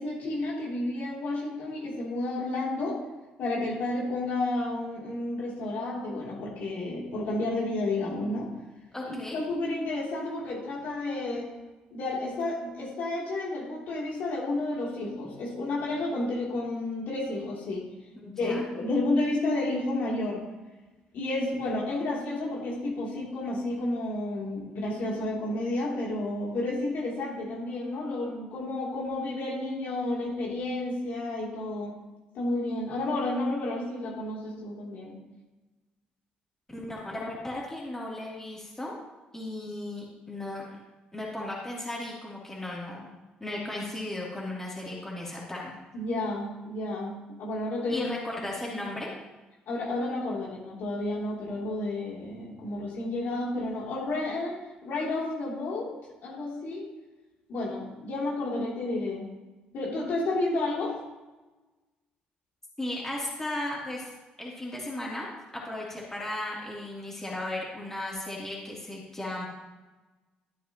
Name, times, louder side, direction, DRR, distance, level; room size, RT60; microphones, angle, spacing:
voice 1, 0.0-3.0 3.4-8.5 9.0-11.5 11.9-17.9 18.4-20.4 21.1-31.9 32.3-35.2 45.9-48.1 48.6-48.8 49.7-55.9 56.2-56.8 57.5-59.3 59.7-61.0, left 2 dB, 70° left, -5 dB, 3.3 m, -31 dB
voice 2, 8.9-9.4 18.2-18.6 36.7-39.0 39.3-40.7 41.1-43.1 43.4-45.7 47.9-49.1 62.8-64.1 64.4-65.3 65.5-69.5, left 1 dB, 15° left, -6 dB, 3.3 m, -35 dB
13.5 x 9.2 x 3.1 m, 1.1 s
cardioid pair, 85°, 3 cm